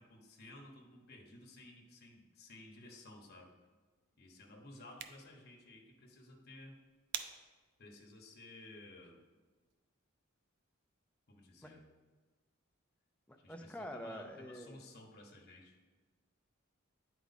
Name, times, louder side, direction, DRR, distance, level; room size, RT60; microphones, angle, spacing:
voice 1, 0.0-3.5 4.2-6.8 7.8-9.2 11.3-11.8 13.4-15.8, left 1 dB, 50° left, 1 dB, 1.1 m, -55 dB
sound 1, 4.8-9.8, right 8 dB, 55° right, 0.4 m, -51 dB
voice 2, 13.3-14.8, equal, 5° left, 4 dB, 0.5 m, -46 dB
9.1 x 4.6 x 4.1 m, 1.3 s
head